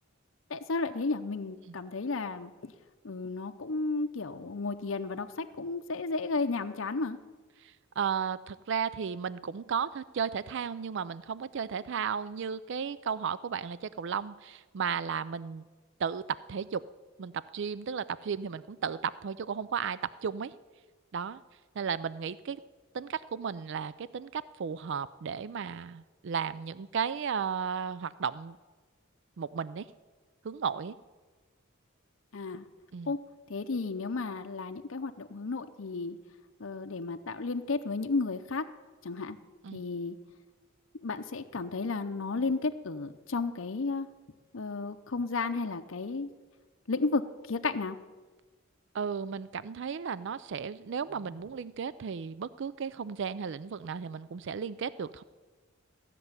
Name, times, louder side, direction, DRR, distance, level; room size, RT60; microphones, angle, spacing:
voice 1, 0.5-2.7 3.0-7.2 32.3-32.6 33.0-33.2 33.5-36.2 36.6-38.7 39.0-39.4 39.7-40.2 41.0-44.1 44.5-46.3 46.9-47.2 47.5-48.0, left 3 dB, 70° left, 6 dB, 0.7 m, -33 dB
voice 2, 7.6-15.6 16.0-16.8 17.2-20.5 21.1-21.4 21.8-22.6 22.9-28.6 29.4-29.9 30.4-31.0 32.9-33.1 39.6-39.8 48.9-55.2, right 6 dB, 60° right, 17 dB, 0.4 m, -34 dB
15.0 x 6.7 x 9.6 m, 1.3 s
head